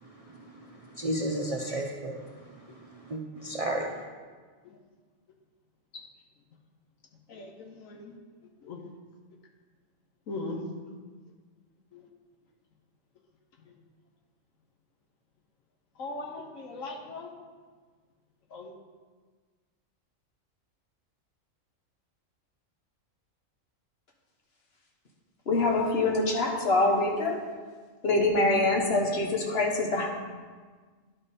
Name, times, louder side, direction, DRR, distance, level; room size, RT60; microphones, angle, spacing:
voice 1, 0.0-4.0, right 1 dB, 40° right, -1 dB, 0.5 m, -34 dB
voice 2, 7.3-8.2 8.6-8.9 10.3-10.6 11.9-12.0 13.7-13.8 16.0-17.3 18.5-18.7, left 3 dB, 85° left, 1 dB, 1.4 m, -39 dB
voice 3, 25.5-27.4 28.0-30.1, left 2 dB, 50° left, 1 dB, 1.3 m, -25 dB
11.5 x 5.1 x 4.2 m, 1.5 s
omnidirectional pair, 1.3 m